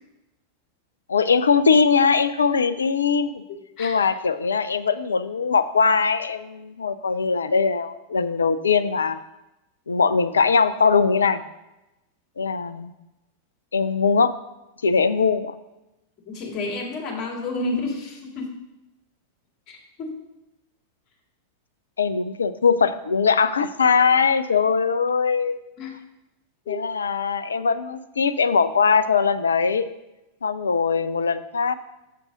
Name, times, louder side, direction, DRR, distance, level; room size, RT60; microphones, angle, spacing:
voice 1, 1.1-3.4 3.8-9.2 9.9-11.4 12.4-12.9 13.7-14.3 14.8-15.5 22.0-25.6 26.7-29.9 30.4-31.7, left 5 dB, 70° left, 13 dB, 0.4 m, -21 dB
voice 2, 3.5-4.0 16.3-18.6 19.7-20.2 25.8-25.9 26.7-26.8, left 2 dB, 35° left, 0 dB, 2.1 m, -30 dB
7.5 x 6.0 x 3.9 m, 0.95 s
figure-of-eight pair, 90°, 0 cm